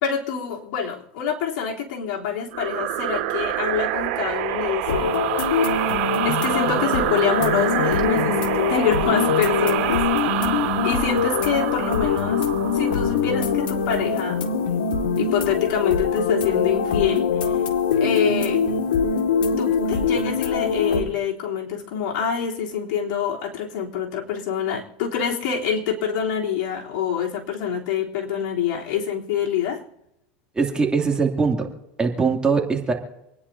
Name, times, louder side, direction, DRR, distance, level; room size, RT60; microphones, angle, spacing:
voice 1, 0.0-5.2 6.2-10.6 10.8-14.5 15.2-17.6 18.0-18.6 19.6-29.8, left 7 dB, 65° left, -3 dB, 3.5 m, -26 dB
sound 1, 2.5-13.8, right 13 dB, 70° right, 2.6 m, -27 dB
sound 2, 4.9-21.0, left 6 dB, 85° left, 2.1 m, -23 dB
voice 2, 30.5-31.7 32.0-32.9, right 4 dB, 15° right, 1 dB, 2.6 m, -21 dB
28.0 x 10.0 x 2.8 m, 0.86 s
hypercardioid pair, 105°, 5 cm